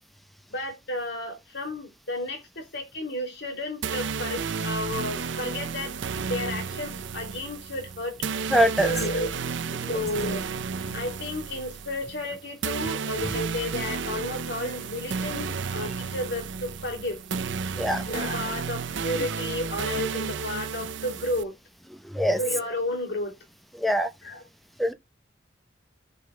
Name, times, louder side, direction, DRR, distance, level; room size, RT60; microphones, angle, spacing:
voice 1, 0.5-8.2 8.8-9.3 9.9-10.5 10.9-17.2 18.0-21.5 22.4-23.4 24.2-24.4, left 1 dB, 65° left, 2.8 m, -32 dB
sound 1, 3.8-21.4, right 5 dB, 75° right, 0.6 m, -32 dB
voice 2, 8.5-8.9 17.8-18.0 22.1-22.4 23.8-24.1 24.8-24.9, equal, ahead, 0.7 m, -22 dB
14.0 x 5.6 x 2.2 m
head